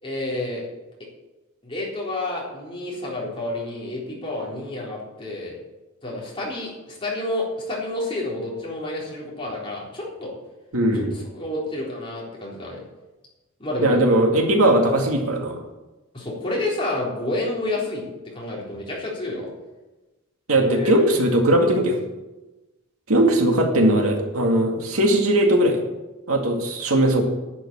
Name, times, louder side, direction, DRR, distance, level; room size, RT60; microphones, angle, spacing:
voice 1, 0.0-0.6 1.6-5.6 6.0-10.3 11.1-12.8 13.6-14.0 16.1-19.5 20.5-21.2, left 2 dB, 25° left, -5 dB, 3.9 m, -29 dB
voice 2, 10.7-11.1 13.8-15.6 20.5-22.0 23.1-25.8 26.3-27.3, right 1 dB, 80° right, 2 dB, 2.1 m, -19 dB
10.5 x 7.2 x 8.7 m, 1.1 s
head